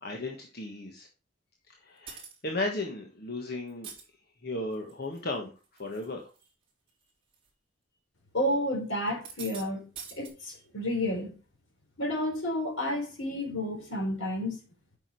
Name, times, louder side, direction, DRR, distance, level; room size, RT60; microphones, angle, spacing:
voice 1, 0.0-1.1 1.8-3.9 4.4-5.5 5.8-6.3, left 2 dB, 50° left, 1.5 m, -35 dB
sound 1, 2.1-2.4 3.7-4.0 4.7-5.2 5.6-6.1 6.4-6.5 7.3-7.5 9.1-9.6 10.0-10.3, right 6 dB, 25° right, 3.7 m, -44 dB
voice 2, 8.3-9.8 10.1-11.3 12.0-14.6, left 1 dB, 85° left, 4.1 m, -31 dB
8.8 x 6.2 x 4.8 m
head